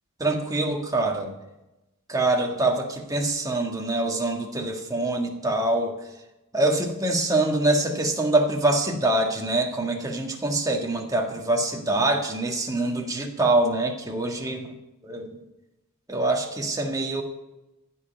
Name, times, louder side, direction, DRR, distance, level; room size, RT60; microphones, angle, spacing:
voice 1, 0.2-1.3 2.1-5.9 6.5-14.7 15.0-15.4 16.1-17.2, right 2 dB, 15° right, 1 dB, 1.7 m, -24 dB
15.0 x 5.5 x 9.3 m, 0.98 s
head